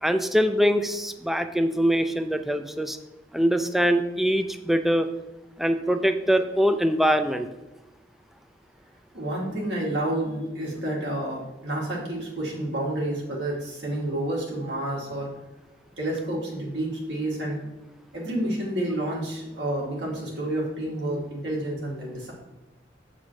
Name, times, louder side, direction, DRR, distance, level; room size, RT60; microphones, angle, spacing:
voice 1, 0.0-3.0 3.3-5.1 5.6-7.5, equal, ahead, 8 dB, 0.3 m, -23 dB
voice 2, 9.1-15.3 16.0-17.6 18.1-22.3, right 1 dB, 85° right, -3 dB, 2.2 m, -29 dB
7.6 x 4.2 x 4.6 m, 1.1 s
head